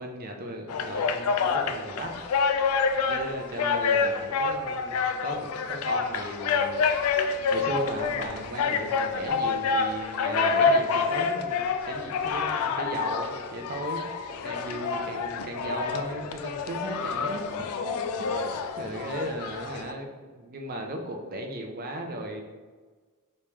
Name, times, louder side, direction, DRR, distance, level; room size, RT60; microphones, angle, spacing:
voice 1, 0.0-2.1 3.1-6.8 7.5-14.2 14.4-17.4 17.8-17.9 18.8-22.4, right 1 dB, 45° right, 3 dB, 0.5 m, -36 dB
sound 1, 0.7-19.9, left 5 dB, 85° left, 0.3 m, -28 dB
3.4 x 3.2 x 2.9 m, 1.4 s
head